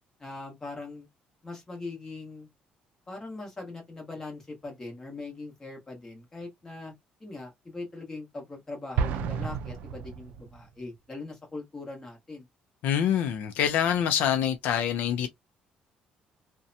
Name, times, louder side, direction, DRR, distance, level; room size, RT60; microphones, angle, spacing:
voice 1, 0.2-1.1 1.4-2.5 3.1-6.9 7.2-12.5, left 3 dB, 15° left, 1.1 m, -41 dB
Explosion, 9.0-10.8, right 6 dB, 75° right, 0.4 m, -31 dB
voice 2, 12.8-15.3, left 9 dB, 70° left, 0.4 m, -25 dB
2.7 x 2.1 x 2.5 m
cardioid pair, 170°, 3 cm